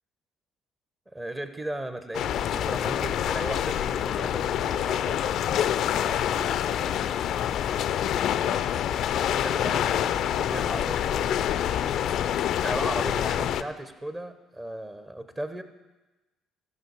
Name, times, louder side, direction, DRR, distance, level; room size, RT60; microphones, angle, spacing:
voice 1, 1.1-6.9 9.3-11.5 12.6-15.6, right 1 dB, 20° right, 10 dB, 0.9 m, -37 dB
sound 1, 2.1-13.6, left 10 dB, 55° left, 0.4 m, -26 dB
16.0 x 5.9 x 4.8 m, 1.1 s
figure-of-eight pair, 50°, 0 cm